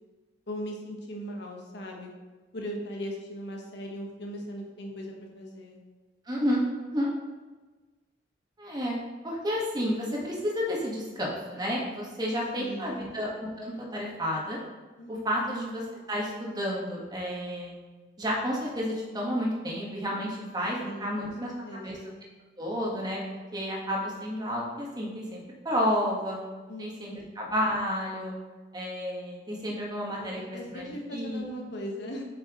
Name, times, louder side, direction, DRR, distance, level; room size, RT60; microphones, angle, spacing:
voice 1, 0.5-2.1 2.5-5.8 12.5-13.1 15.0-15.6 20.8-22.2 26.7-27.4 30.1-32.2, equal, 65° left, 0 dB, 1.2 m, -39 dB
voice 2, 6.3-6.6 6.9-7.1 8.6-9.0 9.2-14.6 15.1-15.8 16.1-17.7 18.2-21.5 21.8-22.0 22.6-23.2 23.5-25.4 25.6-26.4 26.8-28.3 28.7-31.4, equal, 20° right, -3 dB, 1.4 m, -31 dB
7.7 x 5.5 x 3.0 m, 1.3 s
head